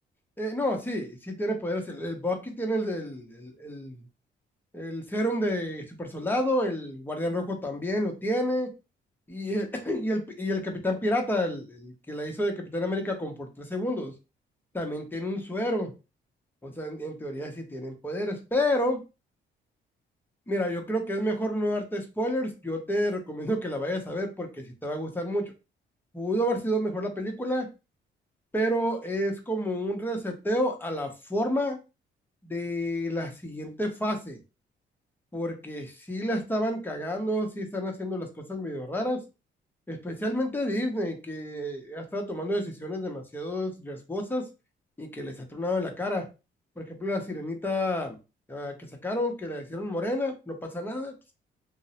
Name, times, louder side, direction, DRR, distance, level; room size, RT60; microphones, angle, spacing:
voice 1, 0.4-4.0 4.7-8.7 9.3-14.1 14.7-15.9 16.6-19.0 20.5-25.5 26.1-27.7 28.5-31.8 32.4-34.4 35.3-39.2 39.9-44.5 45.0-46.3 46.8-48.2 48.5-48.7 49.0-51.1, equal, 10° left, 2 dB, 0.7 m, -30 dB
2.5 x 2.0 x 2.8 m, 0.29 s
cardioid pair, 90°, 20 cm